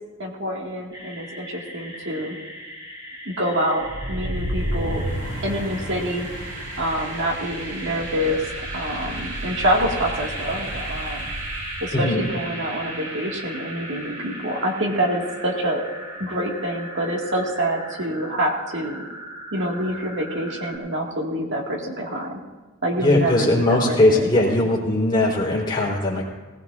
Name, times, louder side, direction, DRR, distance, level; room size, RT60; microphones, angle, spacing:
voice 1, 0.2-2.4 3.3-5.0 5.4-6.3 6.8-8.4 8.7-11.3 11.8-15.8 16.2-19.0 19.5-22.3 22.8-24.7, equal, 55° right, -1 dB, 1.8 m, -26 dB
sound 1, 0.9-20.8, equal, 20° right, 3.0 m, -39 dB
sound 2, 3.8-15.7, right 1 dB, 80° right, 3.9 m, -32 dB
voice 2, 11.9-12.2 23.0-26.2, left 1 dB, 20° left, -4 dB, 3.7 m, -19 dB
19.5 x 18.0 x 2.5 m, 1.3 s
head